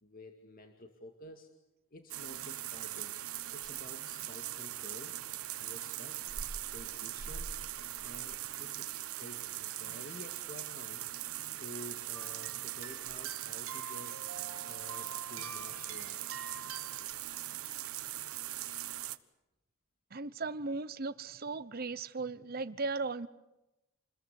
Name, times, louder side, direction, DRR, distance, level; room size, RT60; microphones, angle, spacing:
voice 1, 0.0-1.5 1.9-3.2 3.5-5.2 5.6-6.2 6.6-7.6 8.0-11.0 11.5-14.3 14.7-16.4, left 1 dB, 40° left, 5 dB, 2.2 m, -51 dB
sound 1, 2.1-19.2, right 13 dB, 90° right, 1.2 m, -40 dB
sound 2, 12.1-17.1, right 6 dB, 70° right, 2.3 m, -47 dB
voice 2, 20.1-23.3, right 3 dB, 45° right, 14 dB, 0.9 m, -37 dB
28.0 x 21.5 x 8.3 m, 0.94 s
head